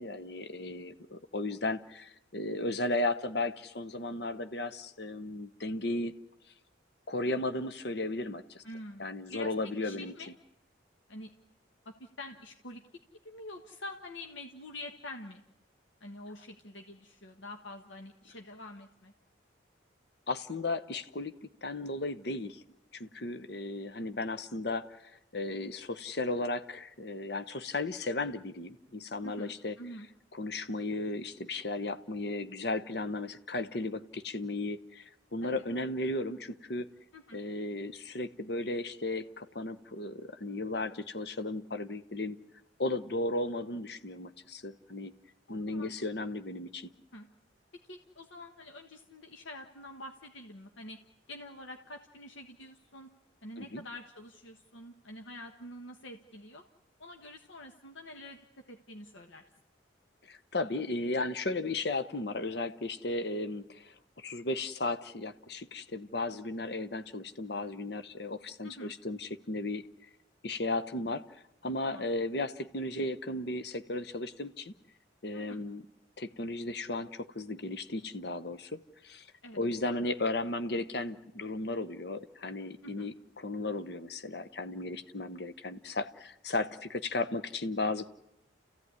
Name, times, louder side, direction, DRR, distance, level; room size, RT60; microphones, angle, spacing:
voice 1, 0.0-6.1 7.1-8.6 9.0-10.1 20.3-22.6 22.9-29.8 30.3-36.9 37.3-42.4 42.8-45.1 45.5-46.9 53.6-53.8 60.3-69.8 70.4-71.2 71.6-74.7 75.2-75.8 76.2-79.3 79.6-88.1, left 2 dB, 55° left, 10 dB, 1.0 m, -35 dB
voice 2, 8.6-9.0 9.3-9.5 9.8-10.3 11.1-11.3 11.8-12.8 13.2-15.4 16.0-19.1 29.2-30.1 35.4-35.6 37.1-37.4 45.5-45.9 47.1-47.3 47.9-51.0 51.3-53.1 53.4-56.6 57.0-58.4 58.7-59.4 61.6-61.7 68.6-68.9 71.8-72.1 75.3-75.6 79.4-79.6 82.8-83.1, left 1 dB, 80° left, 4 dB, 1.5 m, -46 dB
29.5 x 15.5 x 9.7 m, 0.84 s
head